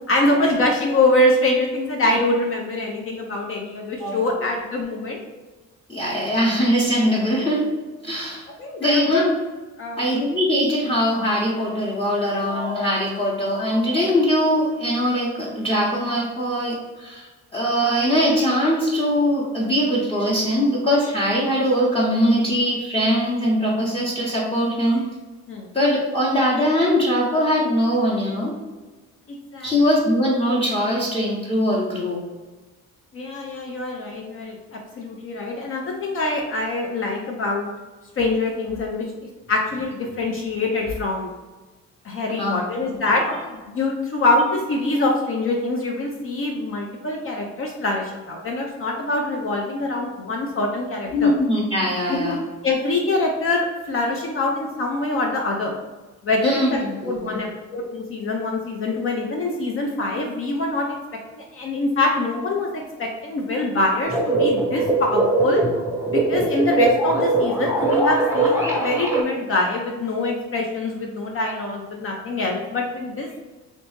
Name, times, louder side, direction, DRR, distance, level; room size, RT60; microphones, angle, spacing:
voice 1, 0.1-5.2 8.6-9.3 9.8-10.0 25.5-25.7 29.3-29.7 33.1-37.7 38.2-39.1 39.5-41.3 42.0-43.3 43.6-51.3 52.1-52.3 52.6-55.7 56.2-60.9 61.3-65.6 66.1-73.3, left 2 dB, 45° left, 0 dB, 0.6 m, -24 dB
voice 2, 5.9-7.6 8.0-8.4 8.8-9.4 10.0-25.0 25.7-28.5 29.6-32.2 42.4-42.6 43.3-43.4 51.1-52.4 56.4-57.4, equal, 20° left, -4 dB, 0.9 m, -21 dB
sound 1, 64.0-69.2, right 2 dB, 10° right, 0.7 m, -21 dB
3.1 x 2.9 x 3.1 m, 1.3 s
cardioid pair, 90°, 30 cm